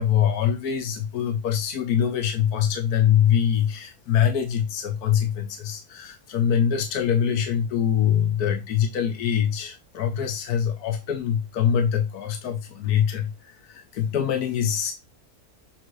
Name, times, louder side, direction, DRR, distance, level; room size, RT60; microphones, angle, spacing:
voice 1, 0.0-14.9, left 9 dB, 75° left, 1.4 m, -24 dB
7.7 x 2.6 x 4.7 m
omnidirectional pair, 1.6 m